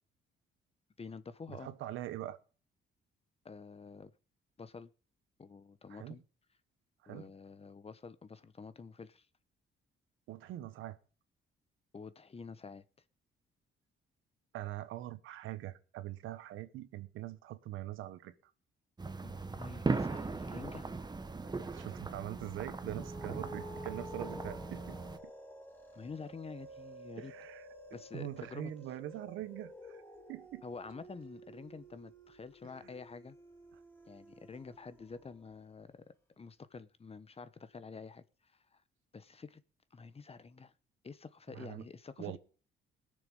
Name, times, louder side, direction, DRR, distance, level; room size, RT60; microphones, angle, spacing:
voice 1, 1.0-1.7 3.4-4.1 4.6-4.9 5.4-6.2 7.1-9.3 11.9-12.8 19.2-20.9 25.9-27.3 27.9-28.7 30.6-33.4 34.1-38.8 39.1-39.6 39.9-40.7 41.0-42.4, left 5 dB, 30° left, 1.1 m, -48 dB
voice 2, 1.5-2.4 5.9-6.2 7.0-7.3 10.3-11.0 14.5-18.5 21.4-25.0 27.2-27.7 28.1-30.0 30.3-30.6 32.6-32.9 41.5-41.8 42.2-42.4, right 14 dB, 90° right, 1.2 m, -43 dB
sound 1, 19.0-25.2, right 3 dB, 20° right, 1.2 m, -39 dB
sound 2, 22.7-35.5, equal, 10° left, 3.7 m, -52 dB
19.5 x 6.9 x 5.5 m
cardioid pair, 90°, 20 cm